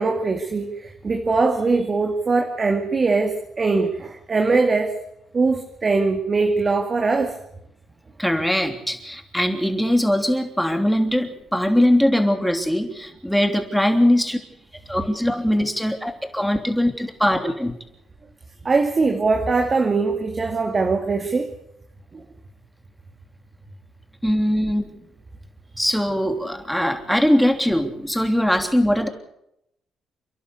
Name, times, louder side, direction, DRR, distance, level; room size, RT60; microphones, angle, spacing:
voice 1, 0.0-4.9 5.3-7.3 18.6-21.5 22.1-22.2, right 3 dB, 35° right, 4 dB, 2.4 m, -21 dB
voice 2, 8.2-14.4 14.9-17.8 24.2-24.9 25.8-29.1, equal, ahead, 5 dB, 3.2 m, -21 dB
29.5 x 11.0 x 8.4 m, 0.81 s
cardioid pair, 90°, 0 cm